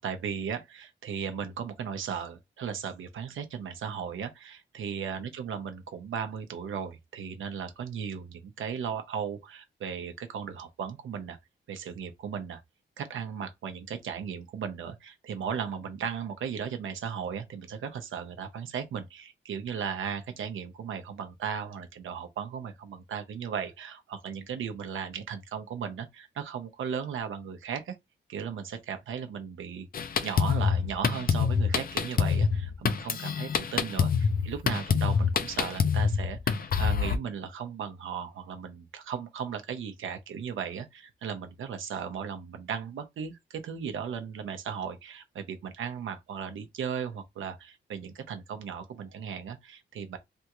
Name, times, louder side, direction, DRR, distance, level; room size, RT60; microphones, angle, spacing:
voice 1, 0.0-11.4 11.7-12.6 13.0-28.0 28.3-29.9 30.2-50.2, right 7 dB, 90° right, 0.7 m, -36 dB
Drum kit, 29.9-37.2, left 6 dB, 50° left, 0.5 m, -26 dB
3.4 x 2.4 x 2.9 m
cardioid pair, 90°, 20 cm